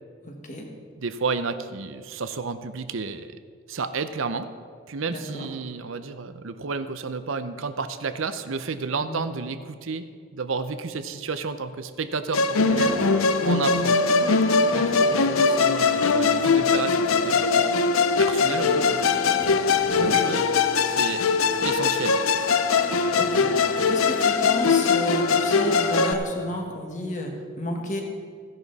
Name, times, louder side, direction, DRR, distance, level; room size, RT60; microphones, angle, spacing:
voice 1, 0.2-0.7 5.1-5.5 9.0-9.2 14.7-15.0 20.0-20.2 23.2-27.3 27.6-28.0, left 1 dB, 35° left, 1 dB, 1.7 m, -32 dB
voice 2, 1.0-3.4 3.7-4.5 4.9-10.0 10.3-13.0 13.4-14.0 15.1-17.8 18.2-19.6 19.9-20.4 20.8-21.2 21.6-22.2, right 4 dB, 75° right, 10 dB, 0.7 m, -31 dB
Musical instrument, 12.3-26.1, left 5 dB, 90° left, 0.6 m, -21 dB
sound 1, 12.6-26.5, right 2 dB, 15° right, 1.4 m, -36 dB
15.0 x 10.5 x 4.1 m, 2.1 s
head